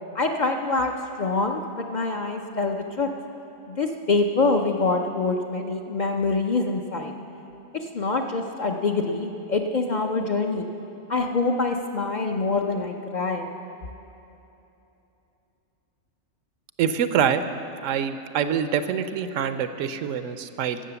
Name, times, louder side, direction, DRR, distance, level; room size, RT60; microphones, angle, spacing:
voice 1, 0.1-0.9 1.2-3.1 3.7-7.1 7.9-10.7 11.1-13.5, left 3 dB, 50° left, 3 dB, 0.6 m, -25 dB
voice 2, 16.8-17.4 17.8-20.8, right 8 dB, 80° right, 11 dB, 1.0 m, -25 dB
12.5 x 7.7 x 6.8 m, 3.0 s
omnidirectional pair, 1.3 m